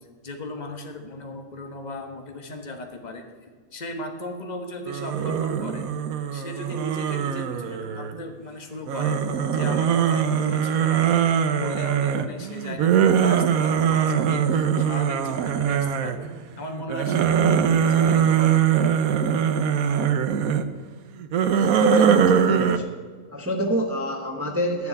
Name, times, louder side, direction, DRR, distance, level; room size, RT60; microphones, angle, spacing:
voice 1, 0.2-3.2 3.7-5.9 6.3-9.2 9.5-11.2 11.6-16.3 16.6-19.0, left 1 dB, 30° left, 4 dB, 1.4 m, -37 dB
sound 1, 4.9-8.3 8.9-16.3 16.7-20.6 21.2-22.8, right 8 dB, 80° right, 1.2 m, -22 dB
voice 2, 21.5-22.8 23.3-24.9, equal, 10° right, 3 dB, 0.9 m, -26 dB
11.0 x 6.9 x 8.4 m, 1.5 s
omnidirectional pair, 1.5 m